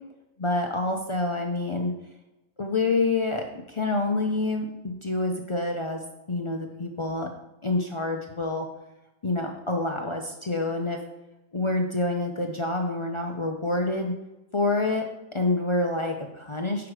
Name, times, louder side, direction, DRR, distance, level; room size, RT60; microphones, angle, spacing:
voice 1, 0.4-1.9 2.6-7.3 7.6-8.7 9.2-11.0 11.5-14.1 14.5-15.0 15.3-16.9, left 2 dB, 55° left, 2 dB, 0.3 m, -27 dB
6.3 x 5.9 x 4.8 m, 0.96 s
omnidirectional pair, 1.5 m